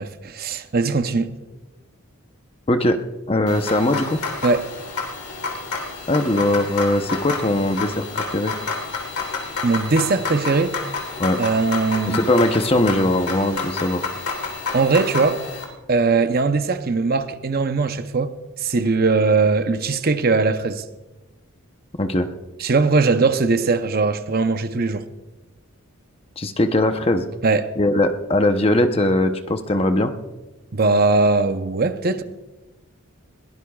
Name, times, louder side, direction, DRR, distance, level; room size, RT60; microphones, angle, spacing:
voice 1, 0.0-1.3 4.4-4.7 9.6-10.8 11.4-12.2 14.7-15.4 15.9-20.8 22.6-25.1 27.4-27.7 30.7-32.2, right 3 dB, 45° right, 0.7 m, -20 dB
voice 2, 2.7-3.0 3.3-4.2 6.1-8.5 11.2-11.4 12.1-14.0 22.0-22.3 26.4-27.2 27.8-30.1, left 1 dB, 25° left, 0.8 m, -20 dB
sound 1, 3.5-15.6, left 4 dB, 85° left, 3.5 m, -29 dB
21.5 x 18.0 x 2.4 m
head